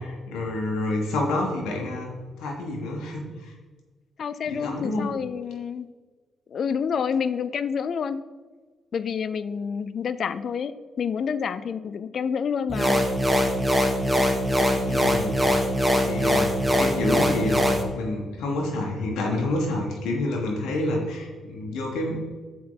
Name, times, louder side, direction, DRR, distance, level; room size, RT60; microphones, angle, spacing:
voice 1, 0.0-3.5 4.5-5.1 14.8-15.4 16.0-17.7 17.9-22.2, left 2 dB, 85° left, 0 dB, 1.2 m, -28 dB
voice 2, 4.2-5.9 6.5-8.2 8.9-10.7 11.0-13.0, left 6 dB, 55° left, 14 dB, 0.4 m, -28 dB
sound 1, 12.7-17.8, equal, 10° right, 0.9 m, -22 dB
7.4 x 4.3 x 3.9 m, 1.3 s
cardioid pair, 90°, 0 cm